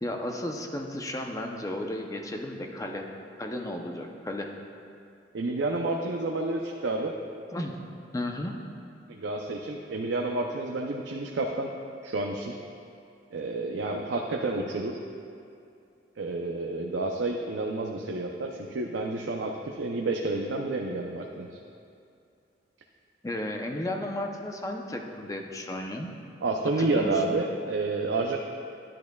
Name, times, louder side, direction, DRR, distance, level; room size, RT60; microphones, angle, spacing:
voice 1, 0.0-3.1 3.4-4.5 7.5-7.8 8.1-8.6 23.2-26.1 26.8-27.4, left 1 dB, 20° left, 2 dB, 0.6 m, -34 dB
voice 2, 5.3-7.1 9.1-11.7 12.0-12.6 13.3-15.0 16.2-21.5 26.4-28.4, right 2 dB, 90° right, 1 dB, 0.6 m, -30 dB
10.5 x 10.5 x 2.3 m, 2.5 s
head